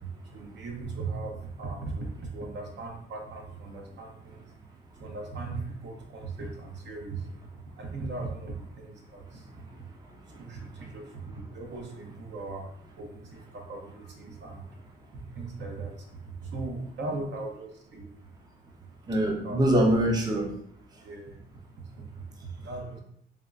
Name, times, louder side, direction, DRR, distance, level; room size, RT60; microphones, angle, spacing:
voice 1, 0.0-4.4 4.9-7.3 7.8-9.5 9.8-9.9 10.3-12.7 12.9-14.7 15.1-18.1 19.4-19.6 21.0-21.4 21.9-22.2 22.4-23.0, right 3 dB, 60° right, 1 dB, 0.8 m, -38 dB
voice 2, 10.3-10.6 19.1-20.5, right 1 dB, 20° right, 0 dB, 0.5 m, -24 dB
3.5 x 2.3 x 2.4 m, 0.68 s
cardioid pair, 90°, 20 cm